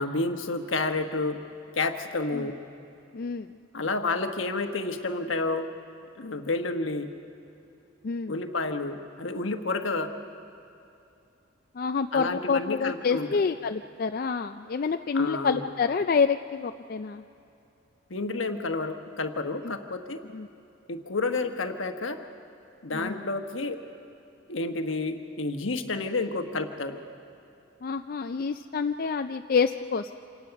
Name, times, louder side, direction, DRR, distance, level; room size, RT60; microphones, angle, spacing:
voice 1, 0.0-1.4 1.8-2.6 3.7-5.7 6.2-7.1 8.3-10.1 12.1-13.4 15.1-15.7 18.1-20.2 20.9-22.2 22.8-23.8 24.5-27.0, left 3 dB, 80° left, 6 dB, 1.2 m, -30 dB
voice 2, 3.1-3.5 8.0-8.4 11.7-17.2 19.6-19.7 20.3-20.5 22.9-23.2 27.8-30.1, left 5 dB, 45° left, 7 dB, 0.4 m, -27 dB
26.5 x 18.5 x 5.9 m, 2.7 s
head